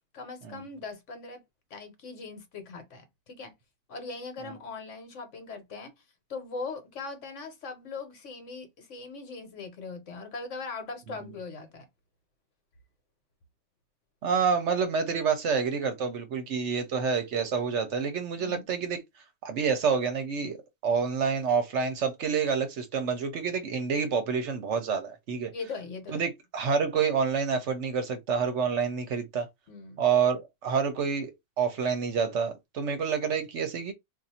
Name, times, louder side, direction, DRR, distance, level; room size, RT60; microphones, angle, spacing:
voice 1, 0.1-1.4 1.7-3.5 3.9-5.9 6.3-11.9 18.4-18.7 25.5-26.2 29.7-30.0, left 4 dB, 65° left, 1.2 m, -40 dB
voice 2, 14.2-19.0 19.4-20.6 20.8-25.5 26.1-29.5 30.0-31.3 31.6-33.9, right 6 dB, 65° right, 0.9 m, -28 dB
2.6 x 2.4 x 4.1 m
omnidirectional pair, 1.4 m